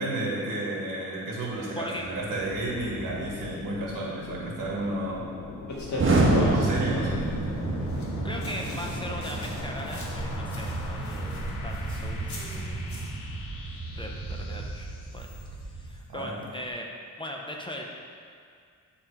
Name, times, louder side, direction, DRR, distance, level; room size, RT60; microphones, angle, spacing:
voice 1, 0.0-5.2 6.5-7.2 16.1-16.4, right 2 dB, 75° right, -4 dB, 1.8 m, -32 dB
sound 1, 1.9-15.7, left 4 dB, 90° left, 1.0 m, -42 dB
sound 2, 5.7-13.1, left 2 dB, 60° left, 1.7 m, -37 dB
Explosion, 6.0-15.9, right 2 dB, 40° right, 1.2 m, -29 dB
voice 2, 8.2-12.8 14.0-14.9 15.1-15.3 15.6-16.9 17.2-17.9, equal, 15° left, 0 dB, 0.6 m, -39 dB
10.0 x 3.7 x 4.7 m, 2.2 s
wide cardioid pair, 140°, 32 cm